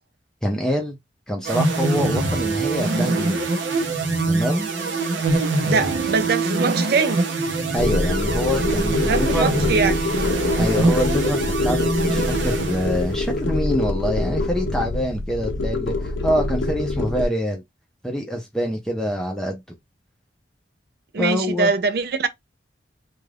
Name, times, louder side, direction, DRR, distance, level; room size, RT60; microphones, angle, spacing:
voice 1, 0.4-1.0 1.3-3.5 4.3-4.7 7.7-9.6 10.6-17.6 18.0-19.6 21.2-21.7, equal, 5° left, 0.5 m, -25 dB
sound 1, 1.5-13.3, right 3 dB, 80° right, 0.7 m, -24 dB
voice 2, 5.7-7.2 9.1-9.9 21.1-22.3, right 4 dB, 55° right, 0.4 m, -22 dB
sound 2, 7.8-17.3, left 2 dB, 80° left, 0.5 m, -24 dB
2.4 x 2.2 x 3.3 m
head